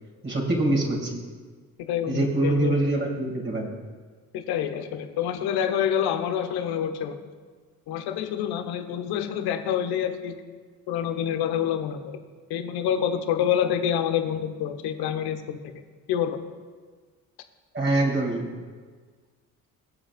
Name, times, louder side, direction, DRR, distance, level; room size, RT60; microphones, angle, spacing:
voice 1, 0.2-1.3 2.1-3.8 17.7-18.5, right 2 dB, 25° right, -2 dB, 2.5 m, -24 dB
voice 2, 1.8-2.8 4.3-7.1 7.9-10.3 10.9-12.1 12.5-15.6 16.1-16.4, left 9 dB, 55° left, 8 dB, 1.2 m, -27 dB
22.0 x 7.5 x 2.5 m, 1.5 s
figure-of-eight pair, 50°, 44 cm